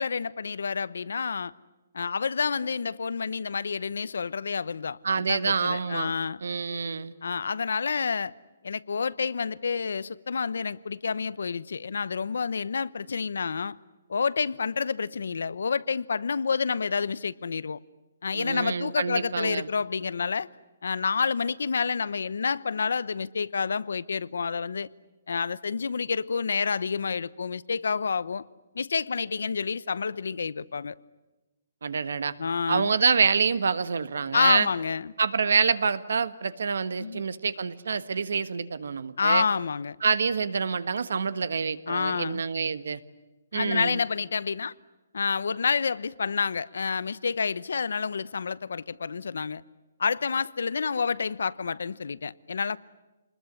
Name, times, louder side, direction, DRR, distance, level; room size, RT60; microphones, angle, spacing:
voice 1, 0.0-1.5 1.9-6.4 7.2-8.3 8.6-13.8 14.1-17.8 18.2-20.5 20.8-24.9 25.3-28.4 28.7-30.9 32.4-32.9 34.3-35.1 37.0-37.2 39.2-40.0 41.9-42.4 43.5-44.7 45.1-49.6 50.0-52.8, left 5 dB, 80° left, 0.9 m, -29 dB
voice 2, 5.0-6.1 6.4-7.1 18.3-19.7 31.8-32.3 32.7-34.7 35.2-39.5 40.0-43.0 43.5-44.0, right 5 dB, 70° right, 1.4 m, -26 dB
27.5 x 21.0 x 9.8 m
hypercardioid pair, 175°, 0 cm